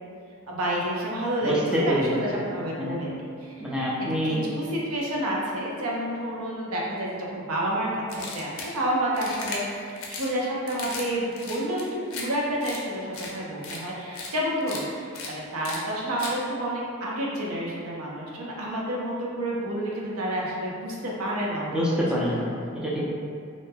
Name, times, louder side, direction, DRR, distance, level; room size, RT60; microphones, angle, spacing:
voice 1, 0.5-3.1 3.4-3.5 4.2-9.6 9.9-21.8, right 1 dB, 75° right, -4 dB, 0.6 m, -29 dB
voice 2, 1.4-2.5 2.8-3.0 3.6-4.4 21.7-23.0, equal, 5° right, -7 dB, 0.3 m, -26 dB
sound 1, 8.1-8.7 9.1-9.6 10.0-10.3 10.7-11.1 11.3-12.2 12.6-12.8 13.1-13.3 13.6-13.8 14.1-14.3 14.6-14.8 15.1-15.3 15.6-15.8 16.2-16.3, left 4 dB, 65° left, 0.5 m, -36 dB
2.6 x 2.1 x 3.4 m, 2.3 s
head